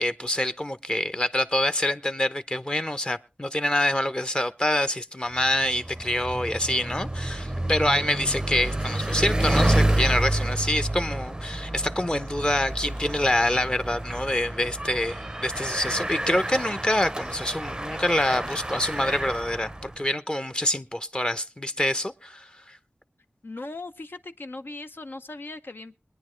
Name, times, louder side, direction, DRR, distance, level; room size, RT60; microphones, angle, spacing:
voice 1, 0.0-22.8, left 1 dB, 25° left, 0.8 m, -26 dB
Bicycle, 5.4-20.0, right 1 dB, 20° right, 0.6 m, -29 dB
voice 2, 23.4-26.0, left 2 dB, 70° left, 0.8 m, -38 dB
22.0 x 9.7 x 3.2 m
wide cardioid pair, 50°, 4 cm